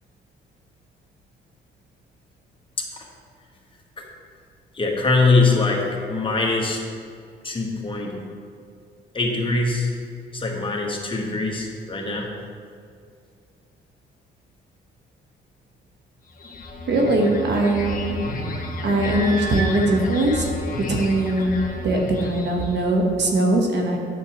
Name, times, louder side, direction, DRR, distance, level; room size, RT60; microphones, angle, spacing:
voice 1, 4.7-6.8 7.4-8.1 9.1-9.9 10.3-12.3, left 3 dB, 25° left, -1 dB, 1.3 m, -22 dB
sound 1, 16.3-22.9, left 1 dB, 45° left, 1.3 m, -31 dB
voice 2, 16.9-18.2 18.8-20.4 20.9-24.0, right 1 dB, 60° right, 2 dB, 1.1 m, -21 dB
9.0 x 7.1 x 3.0 m, 2.3 s
cardioid pair, 90°, 20 cm